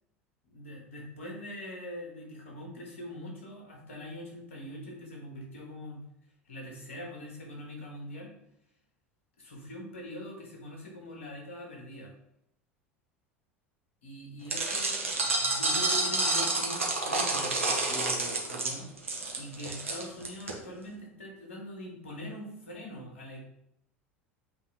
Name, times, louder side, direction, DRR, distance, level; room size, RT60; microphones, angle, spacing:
voice 1, 0.5-6.0 6.5-8.3 9.4-12.1 14.0-18.9 19.4-23.4, left 1 dB, 75° left, -1 dB, 2.2 m, -43 dB
sound 1, 14.5-20.5, right 2 dB, 85° right, 1.3 m, -29 dB
8.7 x 3.8 x 3.7 m, 0.75 s
figure-of-eight pair, 75°, 7 cm